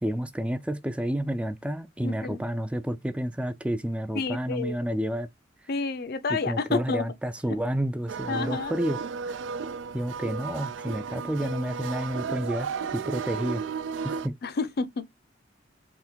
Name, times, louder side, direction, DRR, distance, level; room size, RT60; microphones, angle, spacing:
voice 1, 0.0-5.3 6.3-9.4 9.9-13.6 14.0-14.4, equal, 5° right, 0.3 m, -30 dB
voice 2, 2.0-2.4 4.1-4.8 5.7-7.1 8.3-8.7 12.3-12.5 14.4-15.0, left 3 dB, 55° left, 0.5 m, -30 dB
sound 1, 8.1-14.3, right 5 dB, 85° right, 0.4 m, -34 dB
3.6 x 3.4 x 4.3 m
head